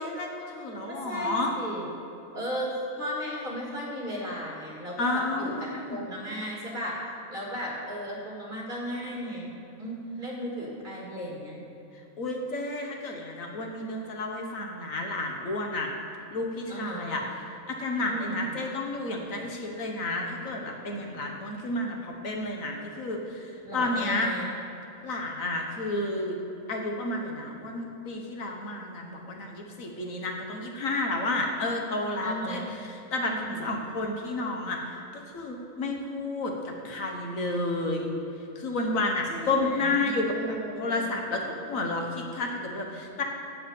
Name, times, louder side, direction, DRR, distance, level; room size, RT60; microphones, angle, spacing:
voice 1, 0.0-1.5 5.0-6.0 12.2-15.9 16.3-24.3 25.0-26.4 26.7-35.0 35.3-38.1 38.5-43.2, left 2 dB, 70° left, 1 dB, 1.5 m, -31 dB
voice 2, 0.9-1.9 2.3-7.0 7.3-9.5 9.8-11.6 16.7-17.2 18.0-18.6 23.6-24.5 32.2-32.7 33.3-33.7 39.3-41.0, equal, 35° right, -4 dB, 2.4 m, -35 dB
8.0 x 7.6 x 7.5 m, 2.9 s
omnidirectional pair, 1.5 m